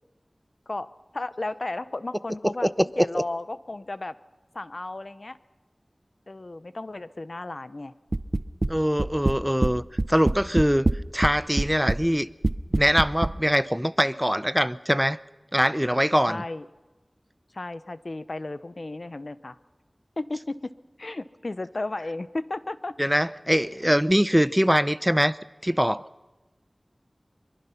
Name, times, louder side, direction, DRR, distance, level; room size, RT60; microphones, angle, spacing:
voice 1, 1.1-2.7 3.0-4.1 4.5-5.4 6.3-7.9 16.3-16.7 17.5-19.6 20.2-22.9, left 2 dB, 65° left, 0.8 m, -34 dB
voice 2, 2.4-3.2 8.7-9.8 10.1-10.9 11.1-12.3 12.7-15.2 15.5-16.4 23.0-25.4 25.6-26.0, equal, 5° right, 0.6 m, -23 dB
sound 1, 8.1-8.7 9.0-9.7 10.0-11.3 11.6-12.0 12.4-13.3, right 2 dB, 50° right, 0.6 m, -24 dB
23.5 x 22.5 x 5.7 m
wide cardioid pair, 45°, 0 cm